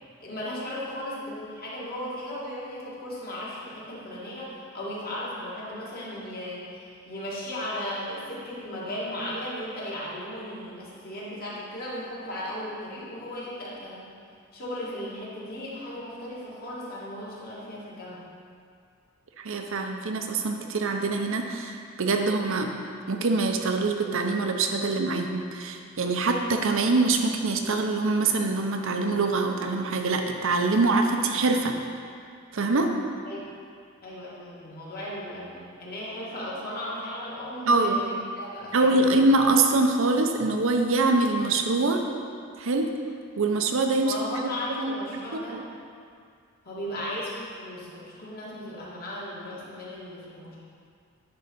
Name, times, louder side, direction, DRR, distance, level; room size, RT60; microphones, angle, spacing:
voice 1, 0.2-14.1 14.5-18.3 33.2-33.4 34.0-39.2 44.0-45.7 46.6-50.6, left 1 dB, 45° left, -7 dB, 1.9 m, -36 dB
voice 2, 19.4-22.7 23.1-31.8 32.5-32.9 37.7-38.0 38.7-42.0 42.6-42.9 43.4-44.1 44.8-44.9 45.3-45.4, right 3 dB, 65° right, 4 dB, 0.7 m, -24 dB
10.0 x 3.8 x 5.4 m, 2.3 s
head